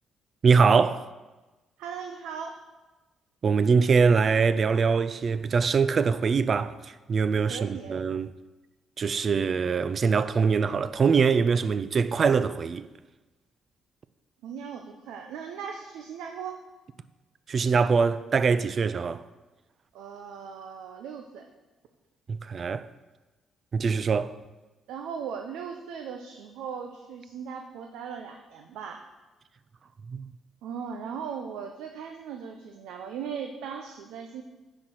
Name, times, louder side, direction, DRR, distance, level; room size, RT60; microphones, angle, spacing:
voice 1, 0.4-1.1 3.4-8.3 9.0-12.9 17.5-19.2 22.3-22.9 23.7-24.4 30.1-30.3, right 5 dB, 45° right, 0.4 m, -23 dB
voice 2, 1.8-2.5 7.5-7.9 14.4-16.6 19.9-21.5 24.9-29.0 30.6-34.4, right 7 dB, 90° right, 0.6 m, -38 dB
9.9 x 4.5 x 5.7 m
cardioid pair, 90°, 0 cm